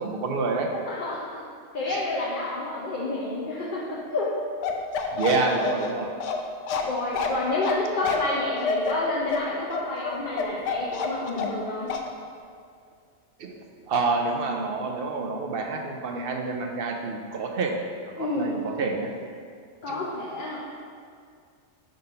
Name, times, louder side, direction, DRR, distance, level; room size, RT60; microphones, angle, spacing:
voice 1, 0.0-0.7 1.9-2.0 5.1-6.1 13.4-13.6 13.9-17.8 18.0-19.1 19.9-20.0, right 3 dB, 60° right, 2 dB, 0.7 m, -28 dB
voice 2, 0.9-1.4 1.7-4.3 5.2-5.4 6.8-11.9 18.2-18.7 19.8-20.6, left 2 dB, 50° left, -5 dB, 0.8 m, -29 dB
Bark, 4.6-11.6 11.9-12.1, left 5 dB, 80° left, 0.9 m, -28 dB
5.2 x 4.0 x 5.6 m, 2.2 s
omnidirectional pair, 1.3 m